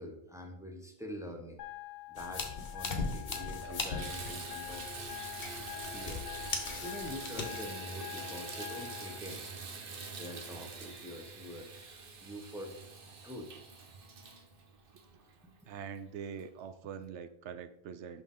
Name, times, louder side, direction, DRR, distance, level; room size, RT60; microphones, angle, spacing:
voice 1, 0.0-1.6 2.1-4.9 5.9-9.5 10.2-12.8 13.2-13.5 15.4-15.5, equal, 5° right, 2 dB, 0.9 m, -45 dB
sound 1, 1.6-9.2, left 17 dB, 90° left, 1.0 m, -45 dB
sound 2, 2.2-7.6, left 4 dB, 55° left, 1.2 m, -39 dB
Water tap faucet / Bathtub (filling or washing), 2.8-2.9 3.3-15.7 16.4-16.5 17.0-17.1, right 4 dB, 55° right, 1.1 m, -45 dB
voice 2, 15.7-18.2, right 7 dB, 80° right, 11 dB, 0.9 m, -44 dB
6.3 x 5.9 x 3.6 m, 0.74 s
omnidirectional pair, 1.2 m